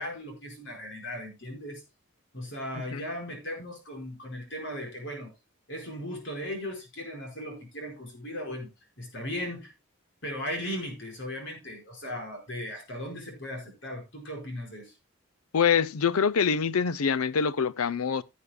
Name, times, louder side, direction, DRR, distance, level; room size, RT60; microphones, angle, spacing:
voice 1, 0.0-1.8 2.3-5.3 5.7-8.7 9.0-9.7 10.2-14.9, left 1 dB, 55° left, 4.7 m, -37 dB
voice 2, 15.5-18.2, left 6 dB, 85° left, 0.6 m, -25 dB
16.0 x 8.5 x 2.2 m
head